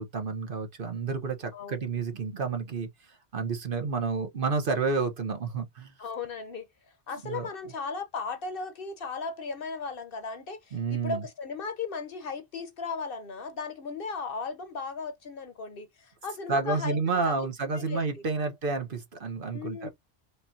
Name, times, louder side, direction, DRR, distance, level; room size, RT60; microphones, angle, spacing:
voice 1, 0.0-5.9 7.1-7.5 10.7-11.3 16.5-19.9, right 4 dB, 55° right, 1.1 m, -30 dB
voice 2, 1.5-1.9 6.0-6.7 7.1-17.3 17.9-18.0 19.5-19.9, left 4 dB, 60° left, 1.0 m, -36 dB
5.2 x 2.8 x 2.7 m
omnidirectional pair, 1.1 m